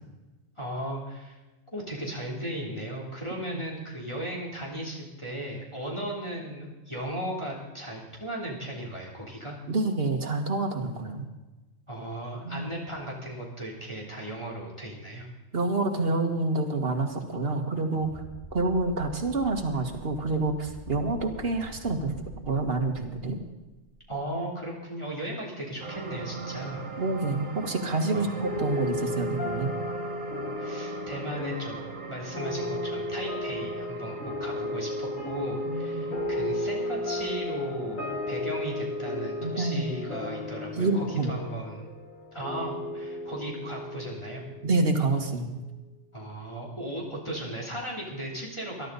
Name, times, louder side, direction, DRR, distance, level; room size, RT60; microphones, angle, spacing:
voice 1, 0.6-1.4 1.7-9.6 11.9-15.3 24.1-26.8 28.1-28.4 30.6-31.8 32.1-34.1 34.4-41.9 42.3-44.4 46.1-48.9, right 1 dB, 20° left, -5 dB, 3.1 m, -36 dB
voice 2, 9.7-11.3 12.4-12.7 15.5-18.2 18.5-22.2 22.5-23.4 27.0-29.8 35.6-36.1 39.4-39.8 40.8-41.3 44.6-45.6, right 3 dB, 50° right, 4 dB, 1.8 m, -28 dB
sound 1, 17.9-24.2, left 1 dB, 70° left, 6.5 m, -46 dB
sound 2, 25.8-42.3 42.7-42.8, right 5 dB, 75° right, 1.9 m, -41 dB
sound 3, 28.4-45.2, left 2 dB, 90° left, 2.8 m, -34 dB
22.0 x 12.0 x 4.1 m, 1.1 s
omnidirectional pair, 1.3 m